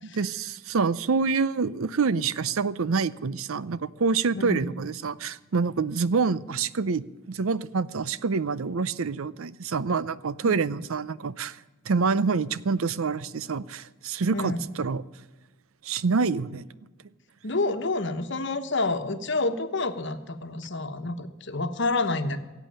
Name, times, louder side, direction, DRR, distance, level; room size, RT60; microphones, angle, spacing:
voice 1, 0.1-11.6 11.9-15.0 15.8-16.6, right 4 dB, 75° right, 18 dB, 0.6 m, -27 dB
voice 2, 4.3-4.7 10.4-10.6 14.3-14.6 17.4-22.4, left 3 dB, 55° left, 8 dB, 1.2 m, -28 dB
17.0 x 8.3 x 8.8 m, 1.2 s
head